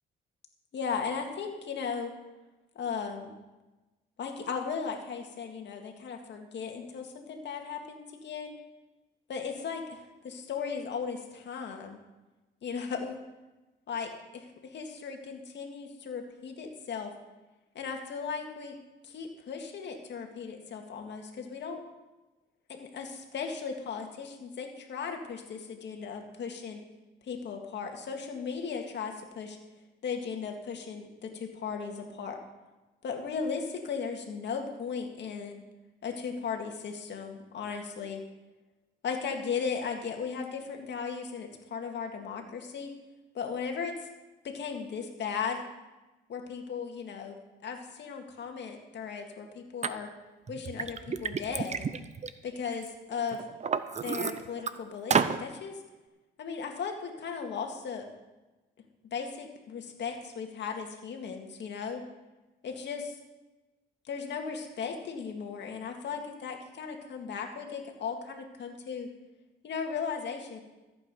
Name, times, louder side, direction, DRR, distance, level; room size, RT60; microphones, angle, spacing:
voice 1, 0.7-2.1 2.8-3.3 4.2-8.5 9.3-12.0 12.6-13.2 13.9-17.1 17.7-18.8 19.0-21.8 22.7-26.8 27.2-29.6 30.0-32.4 33.0-35.6 36.0-38.2 39.0-42.9 43.3-44.1 44.4-45.6 46.3-50.1 50.5-51.8 52.4-53.4 54.0-55.8 56.4-58.0 59.1-62.0 62.6-63.0 64.0-69.1 69.6-70.6, left 6 dB, 60° left, 3 dB, 2.1 m, -36 dB
Liquid, 49.8-49.9 50.5-52.9 53.3-54.7 55.1-55.4, right 6 dB, 35° right, 0.7 m, -30 dB
14.5 x 8.6 x 5.4 m, 1.1 s
cardioid pair, 90°, 20 cm